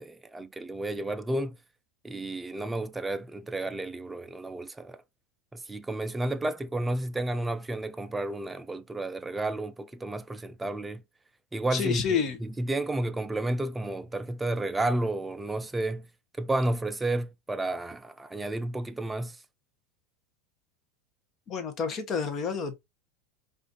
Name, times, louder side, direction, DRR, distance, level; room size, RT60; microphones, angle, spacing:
voice 1, 0.0-1.6 2.0-5.0 5.5-11.0 11.5-16.1 16.4-19.4, right 2 dB, 10° right, 0.4 m, -31 dB
voice 2, 11.7-12.4 21.5-22.8, left 6 dB, 35° left, 0.9 m, -29 dB
4.8 x 2.5 x 2.9 m
supercardioid pair, 115°, 0 cm